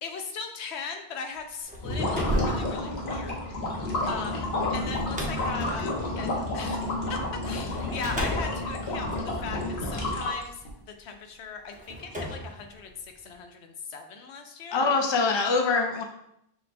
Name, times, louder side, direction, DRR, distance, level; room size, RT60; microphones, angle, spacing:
voice 1, 0.0-3.4 4.1-14.9, left 5 dB, 85° left, 5 dB, 0.9 m, -39 dB
sound 1, 1.5-7.1 7.7-10.1 11.0-11.1 11.7-13.4, right 1 dB, 10° right, 0.7 m, -35 dB
sound 2, 1.7-10.7, left 2 dB, 70° left, 1.2 m, -30 dB
voice 2, 14.7-16.0, left 4 dB, 35° left, 3 dB, 0.5 m, -24 dB
5.9 x 2.1 x 4.1 m, 0.76 s
omnidirectional pair, 1.1 m